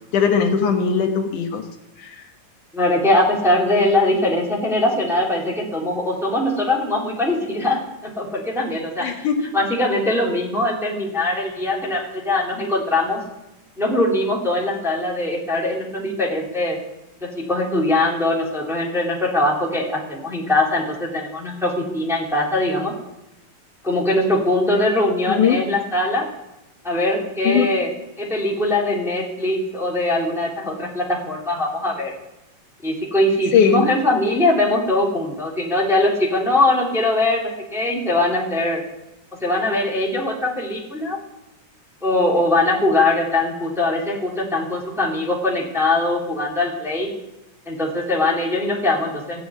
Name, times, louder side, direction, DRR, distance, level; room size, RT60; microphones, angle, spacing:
voice 1, 0.1-1.6 2.0-2.1 9.0-9.5 25.3-25.6 27.4-27.7 33.5-33.9, left 7 dB, 75° left, 3 dB, 2.7 m, -19 dB
voice 2, 2.7-9.3 9.5-13.2 13.8-16.8 17.2-22.9 23.8-26.2 26.8-27.9 28.2-32.1 32.8-38.8 39.4-41.2 42.0-47.1 47.7-49.4, left 2 dB, ahead, -3 dB, 2.7 m, -21 dB
16.0 x 7.8 x 9.4 m, 0.94 s
omnidirectional pair, 3.7 m